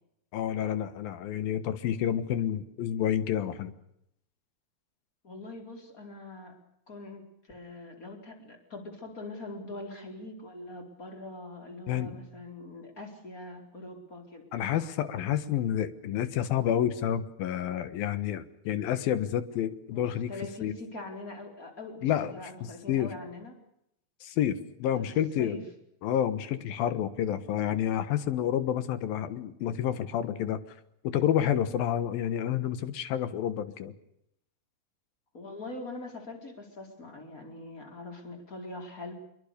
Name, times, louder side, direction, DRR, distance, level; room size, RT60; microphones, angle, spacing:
voice 1, 0.3-3.7 11.9-12.2 14.5-20.3 20.6-20.7 22.0-22.3 22.6-23.1 24.2-25.6 26.0-30.6 31.0-33.9, left 10 dB, 70° left, 12 dB, 3.1 m, -29 dB
voice 2, 5.2-6.6 6.9-14.4 19.9-23.5 25.0-25.1 25.4-25.6 35.3-39.1, left 2 dB, 20° left, 3 dB, 4.6 m, -43 dB
25.0 x 23.5 x 6.8 m, 0.77 s
omnidirectional pair, 4.5 m